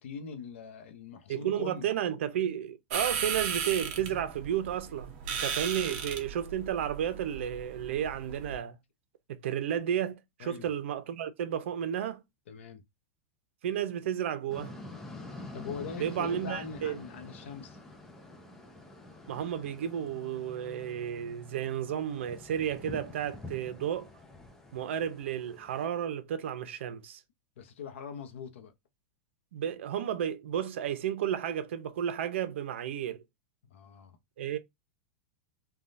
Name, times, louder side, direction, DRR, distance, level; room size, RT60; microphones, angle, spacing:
voice 1, 0.0-1.9 5.8-5.9 10.4-10.7 12.5-12.8 15.5-17.8 27.6-28.7 33.6-34.2, left 6 dB, 85° left, 0.8 m, -42 dB
voice 2, 1.3-8.8 9.3-12.2 13.6-14.7 16.0-17.0 19.3-24.1 24.7-27.2 29.5-33.2 34.4-34.6, right 9 dB, 75° right, 0.7 m, -32 dB
sound 1, 2.9-8.6, right 7 dB, 45° right, 0.9 m, -36 dB
sound 2, 14.5-25.9, left 2 dB, 5° left, 0.4 m, -47 dB
3.5 x 2.3 x 2.6 m
supercardioid pair, 165°, 7 cm